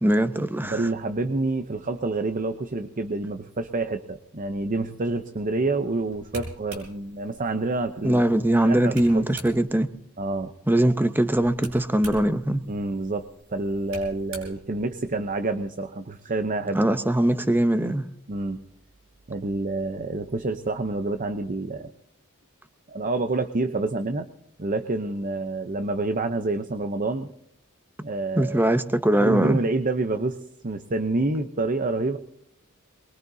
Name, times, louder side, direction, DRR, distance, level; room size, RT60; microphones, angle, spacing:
voice 1, 0.0-0.8 8.0-9.9 10.7-12.6 16.7-18.1 28.4-29.6, right 1 dB, 10° right, 0.7 m, -21 dB
voice 2, 0.6-9.3 10.2-10.5 12.7-16.8 18.3-18.6 19.3-21.9 22.9-24.3 24.6-27.3 28.0-28.6 29.1-32.2, right 2 dB, 40° right, 0.7 m, -28 dB
sound 1, 6.1-9.9 11.3-15.5, right 1 dB, 90° right, 5.4 m, -45 dB
23.0 x 21.5 x 2.7 m
head